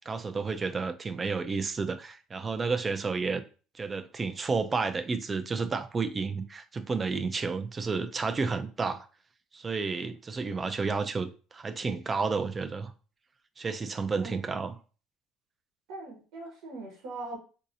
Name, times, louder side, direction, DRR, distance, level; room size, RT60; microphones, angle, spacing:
voice 1, 0.1-3.4 3.7-9.1 9.5-12.9 13.6-14.8, right 4 dB, 25° right, 0.4 m, -31 dB
voice 2, 15.9-17.4, right 2 dB, 85° right, 1.0 m, -41 dB
3.8 x 2.8 x 2.6 m
cardioid pair, 115°, 0 cm